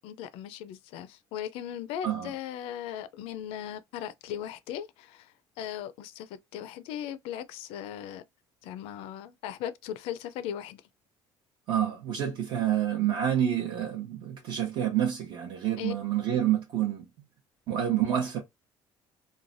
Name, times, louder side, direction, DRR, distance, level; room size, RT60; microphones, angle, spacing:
voice 1, 0.0-8.2 8.6-10.8 15.8-15.9, left 10 dB, 80° left, 0.4 m, -38 dB
voice 2, 11.7-17.0 17.7-18.4, right 10 dB, 55° right, 0.8 m, -28 dB
3.1 x 2.2 x 2.5 m
cardioid pair, 160°, 10 cm